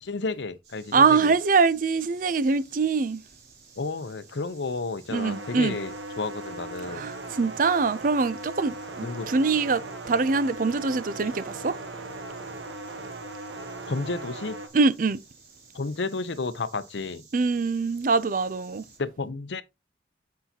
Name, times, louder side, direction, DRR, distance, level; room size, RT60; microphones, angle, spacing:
voice 1, 0.0-1.3 3.8-7.1 9.0-9.3 13.9-14.6 15.7-17.2 19.0-19.6, left 3 dB, 75° left, 0.7 m, -32 dB
Insect, 0.6-19.0, right 5 dB, 65° right, 3.9 m, -55 dB
voice 2, 0.9-3.2 5.1-5.8 6.9-11.8 14.7-15.2 17.3-18.8, right 4 dB, 45° right, 0.5 m, -24 dB
sound 1, 5.1-14.7, right 2 dB, 90° right, 1.3 m, -38 dB
8.0 x 5.6 x 2.8 m
head